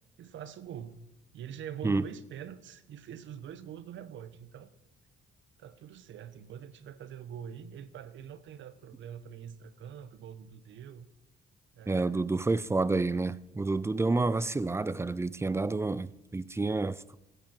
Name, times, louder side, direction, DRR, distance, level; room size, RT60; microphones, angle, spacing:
voice 1, 0.2-1.0 1.3-4.7 5.6-11.1 11.7-12.3, right 9 dB, 70° right, 0.9 m, -44 dB
voice 2, 11.9-17.0, right 3 dB, 15° right, 0.4 m, -29 dB
15.5 x 9.1 x 4.4 m
cardioid pair, 90°, 20 cm